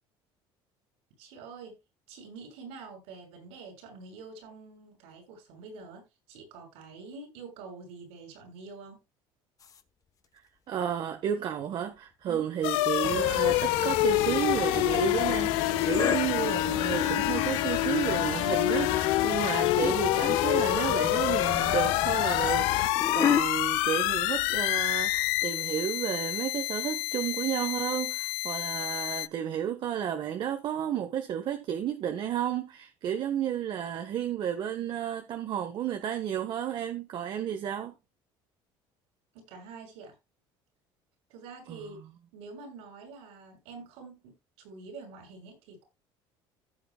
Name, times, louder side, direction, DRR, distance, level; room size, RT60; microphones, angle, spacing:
voice 1, 1.2-1.8 2.1-9.0 12.3-12.5 39.3-40.1 41.3-42.0 42.3-45.8, right 4 dB, 85° right, 7.1 m, -46 dB
sound 1, 9.6-9.8 12.7-13.2 13.5-14.7 15.3-16.2 17.2-18.1 18.5-18.8 19.8-20.0 20.2-20.7 22.2-23.5 24.3-24.5 24.8-24.9 25.4-25.5, left 8 dB, 35° left, 1.0 m, -32 dB
voice 2, 10.7-37.9 41.7-41.8, right 9 dB, 50° right, 1.3 m, -32 dB
sound 2, 12.6-29.3, left 19 dB, 90° left, 0.7 m, -27 dB
sound 3, 13.0-22.9, left 10 dB, 55° left, 1.4 m, -35 dB
15.0 x 7.8 x 2.3 m
cardioid pair, 115°, 10 cm